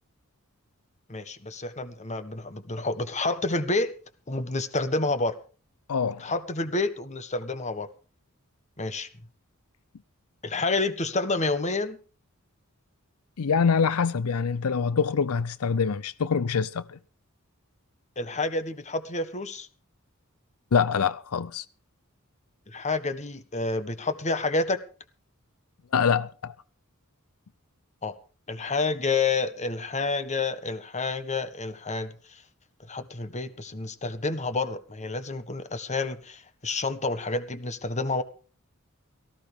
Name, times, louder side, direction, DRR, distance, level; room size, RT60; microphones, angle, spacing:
voice 1, 1.1-3.9 4.3-5.3 6.2-7.9 8.8-9.1 10.4-12.0 18.2-19.7 22.7-24.8 28.0-28.2 28.5-32.4 32.9-38.2, left 3 dB, 35° left, 1.5 m, -29 dB
voice 2, 5.9-6.2 13.4-17.0 20.7-21.6 25.9-26.5, left 6 dB, 85° left, 0.6 m, -25 dB
18.5 x 14.5 x 3.5 m
head